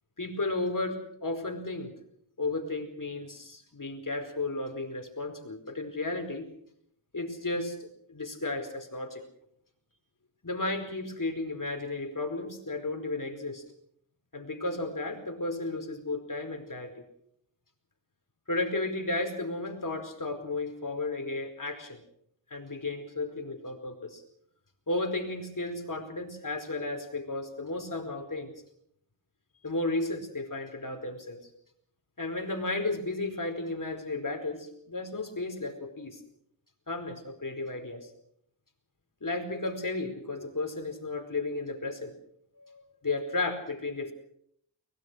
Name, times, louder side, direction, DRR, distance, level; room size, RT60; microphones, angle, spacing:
voice 1, 0.2-1.9 2.4-6.5 7.1-9.2 10.4-13.6 14.3-16.9 18.5-22.0 22.5-24.2 24.9-28.5 29.6-31.4 32.2-36.2 36.9-38.1 39.2-42.1 42.6-44.1, left 2 dB, 40° left, 5 dB, 4.8 m, -33 dB
23.5 x 21.0 x 6.4 m, 0.70 s
wide cardioid pair, 75°, 47 cm